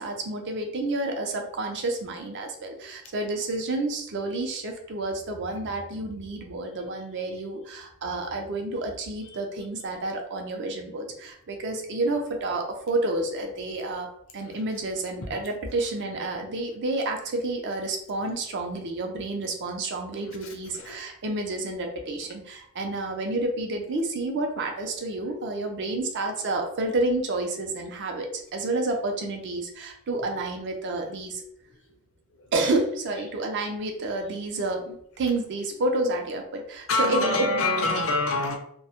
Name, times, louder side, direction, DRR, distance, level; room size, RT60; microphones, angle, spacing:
voice 1, 0.0-14.1 14.3-31.4 32.5-37.5, right 2 dB, 55° right, 3 dB, 0.4 m, -30 dB
voice 2, 20.3-21.0 32.4-32.5 36.9-38.5, left 2 dB, 60° left, 3 dB, 0.5 m, -26 dB
2.1 x 2.0 x 2.8 m, 0.68 s
head